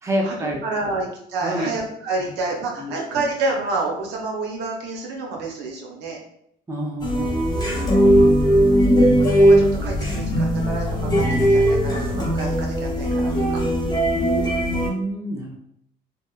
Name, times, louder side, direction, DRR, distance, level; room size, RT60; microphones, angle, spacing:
voice 1, 0.0-0.6 1.4-1.7 2.2-2.3 2.8-3.2 6.7-8.1 14.2-15.6, equal, 15° right, 0 dB, 0.5 m, -28 dB
voice 2, 0.6-6.2 9.2-13.6, right 3 dB, 85° right, -1 dB, 0.7 m, -29 dB
sound 1, 7.0-14.9, equal, 25° left, 0.8 m, -18 dB
2.8 x 2.1 x 2.3 m, 0.73 s
cardioid pair, 110°, 17 cm